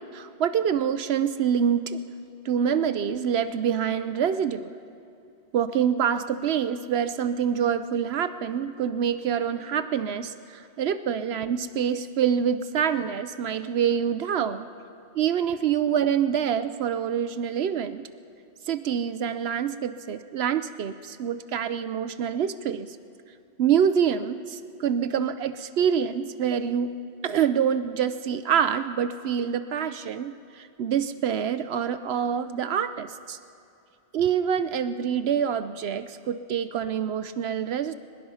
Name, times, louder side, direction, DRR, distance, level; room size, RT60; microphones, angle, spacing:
voice 1, 0.1-2.0 2.4-4.7 5.5-14.7 15.1-18.1 18.7-22.9 23.6-27.0 27.2-33.4 34.1-37.9, right 8 dB, 75° right, 12 dB, 0.9 m, -26 dB
23.5 x 20.5 x 5.6 m, 2.6 s
omnidirectional pair, 1.1 m